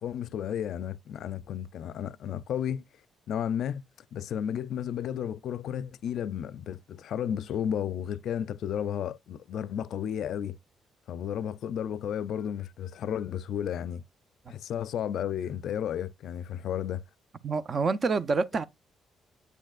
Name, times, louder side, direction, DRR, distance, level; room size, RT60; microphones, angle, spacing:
voice 1, 0.0-2.8 3.3-3.8 4.1-10.6 11.1-14.0 14.5-17.0, left 9 dB, 75° left, 0.4 m, -33 dB
voice 2, 17.4-18.6, right 4 dB, 40° right, 0.6 m, -27 dB
8.3 x 6.4 x 2.4 m
cardioid pair, 105°, 0 cm